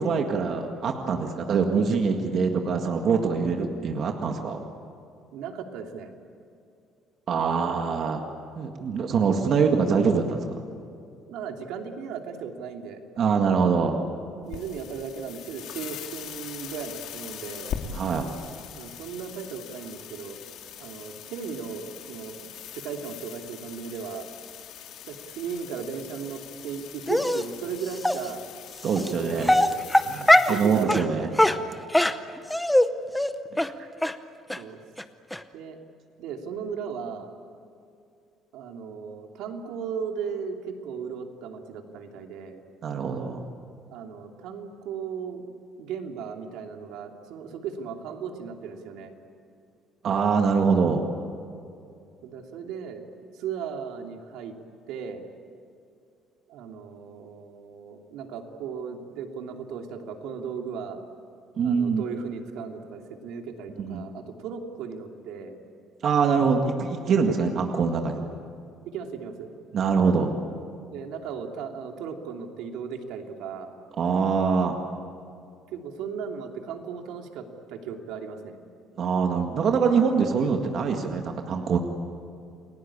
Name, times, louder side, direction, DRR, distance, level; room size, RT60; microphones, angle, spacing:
voice 1, 0.0-4.6 7.3-8.2 8.6-10.4 13.2-14.0 17.9-18.3 28.8-29.5 30.0-31.3 33.5-33.7 42.8-43.4 50.0-51.0 61.6-62.0 63.8-64.0 66.0-68.2 69.7-70.3 74.0-74.8 79.0-81.8, right 5 dB, 40° right, 3 dB, 1.9 m, -24 dB
voice 2, 5.3-6.1 11.3-13.7 14.4-17.8 18.7-20.4 20.8-24.3 25.0-28.4 29.1-29.9 30.5-31.8 34.6-34.8 35.5-35.8 36.2-37.3 38.5-42.6 43.9-45.4 45.8-49.1 52.2-53.1 53.3-54.5 54.9-55.2 56.5-61.0 61.6-65.6 68.9-69.5 70.9-73.7 75.7-78.6, right 6 dB, 80° right, 3 dB, 2.9 m, -36 dB
sound 1, 14.4-30.8, left 8 dB, 65° left, 2.6 m, -41 dB
Dog, 27.1-27.4 28.0-28.2 29.0-29.1 29.4-30.6 30.9-31.0 31.4-32.9 33.1-33.3 33.6-33.7 34.0-34.1 34.5-34.6 35.0-35.1 35.3-35.4, left 1 dB, 5° left, 0.8 m, -20 dB
29.5 x 21.5 x 8.7 m, 2.5 s
cardioid pair, 175°, 0 cm